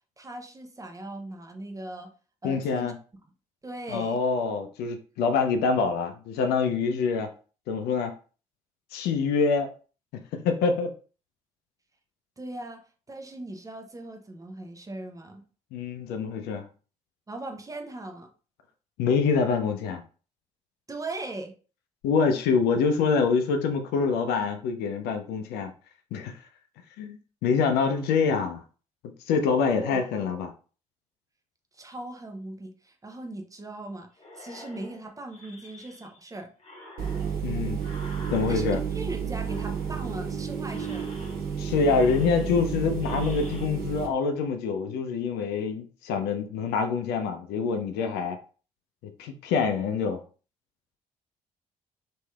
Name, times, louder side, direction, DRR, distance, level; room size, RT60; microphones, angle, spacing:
voice 1, 0.2-2.1 2.4-2.9 3.6-4.2 12.4-12.8 13.1-15.4 17.3-18.3 20.9-21.5 29.7-30.0 31.7-34.1 34.3-36.5 38.5-41.2, right 2 dB, 20° right, 4 dB, 0.6 m, -39 dB
voice 2, 2.4-2.9 3.9-7.3 7.7-8.1 8.9-9.7 10.3-10.9 15.7-16.7 19.0-20.0 22.0-25.7 26.1-26.3 27.0-28.6 29.3-30.5 37.4-37.8 38.3-38.8 41.6-48.4 49.2-50.2, left 5 dB, 60° left, 6 dB, 0.5 m, -25 dB
sound 1, 34.2-36.3 36.6-39.0 39.4-40.3 40.6-41.6 41.9-43.6, left 2 dB, 35° left, 1.0 m, -47 dB
sound 2, 37.0-44.1, right 7 dB, 55° right, 0.8 m, -31 dB
3.1 x 3.0 x 2.3 m, 0.38 s
figure-of-eight pair, 45°, 18 cm